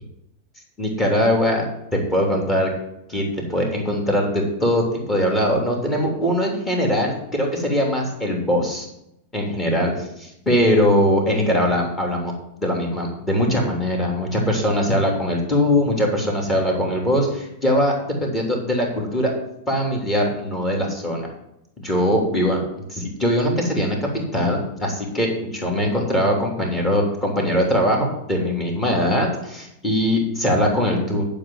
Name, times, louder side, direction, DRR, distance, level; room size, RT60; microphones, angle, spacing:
voice 1, 0.8-1.6 1.9-2.7 3.1-8.9 9.3-12.3 12.6-17.9 18.2-19.3 19.7-21.3 21.8-22.6 22.9-24.0 24.3-31.2, equal, 15° left, 0 dB, 3.2 m, -21 dB
11.0 x 5.3 x 7.7 m, 0.81 s
figure-of-eight pair, 90°, 0 cm